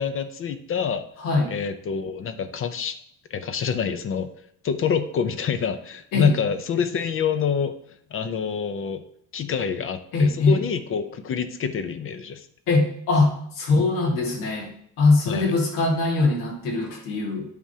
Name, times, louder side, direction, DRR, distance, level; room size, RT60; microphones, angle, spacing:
voice 1, 0.0-1.0 1.5-3.0 3.3-4.3 4.6-7.7 8.1-9.0 9.3-12.5 15.3-15.5, left 6 dB, 40° left, 10 dB, 0.6 m, -27 dB
voice 2, 1.2-1.5 6.1-6.4 10.1-10.6 12.7-14.7 15.0-17.5, left 3 dB, 80° left, -2 dB, 1.9 m, -21 dB
10.5 x 3.6 x 2.8 m, 0.67 s
cardioid pair, 120°, 33 cm